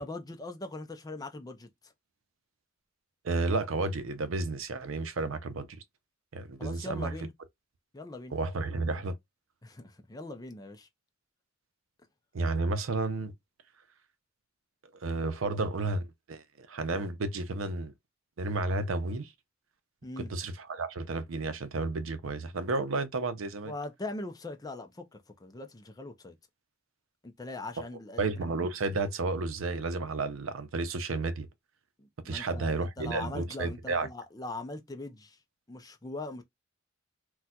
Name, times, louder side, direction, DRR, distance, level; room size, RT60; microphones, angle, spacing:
voice 1, 0.0-1.7 6.6-7.3 7.9-8.4 9.6-10.9 20.0-20.3 23.7-26.4 27.2-28.3 32.0-35.4 35.7-36.4, left 2 dB, 20° left, 0.5 m, -41 dB
voice 2, 3.2-5.8 6.3-7.2 8.3-9.2 12.3-13.3 15.0-17.9 18.4-19.3 20.2-23.7 28.2-31.5 32.2-34.1, right 3 dB, 85° right, 0.6 m, -32 dB
4.2 x 2.3 x 2.3 m
head